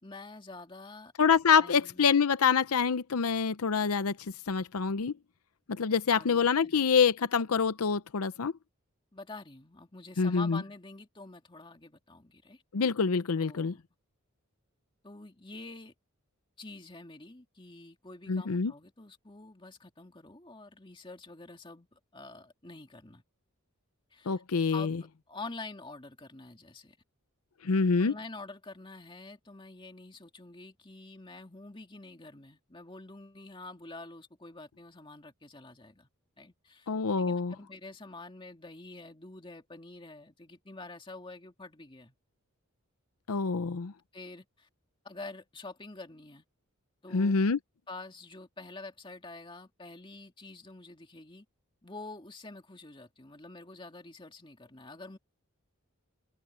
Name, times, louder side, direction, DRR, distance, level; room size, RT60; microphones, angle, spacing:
voice 1, 0.0-1.1 1.6-2.1 6.1-6.9 9.1-12.6 13.4-13.8 15.0-15.9 16.6-23.2 24.1-24.4 24.7-27.0 28.0-36.1 36.4-42.1 44.1-44.7 45.0-46.4 47.0-47.3 47.9-51.5 51.8-55.2, left 3 dB, 20° left, 2.3 m, -47 dB
voice 2, 1.2-4.2 4.5-5.1 5.7-8.5 10.2-10.6 12.7-13.7 18.3-18.7 24.3-25.0 27.6-28.1 36.9-37.5 43.3-43.9 47.1-47.6, left 5 dB, 85° left, 0.7 m, -26 dB
head